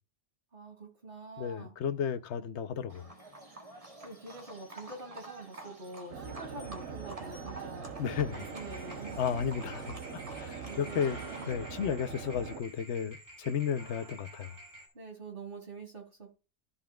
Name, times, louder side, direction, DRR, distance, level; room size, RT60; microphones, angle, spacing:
voice 1, 0.5-1.7 4.0-7.9 8.4-9.2 9.7-9.9 10.7-11.6 14.9-16.3, right 3 dB, 50° right, 2.8 m, -46 dB
voice 2, 1.4-3.0 8.0-8.4 9.2-11.2 11.5-14.5, left 8 dB, 80° left, 1.0 m, -33 dB
Livestock farm animals working animals, 2.9-11.5, right 2 dB, 30° right, 1.7 m, -49 dB
sound 1, 6.1-12.6, right 6 dB, 90° right, 1.2 m, -43 dB
sound 2, 8.3-14.9, right 1 dB, 15° right, 2.5 m, -50 dB
14.0 x 5.5 x 2.3 m
omnidirectional pair, 1.1 m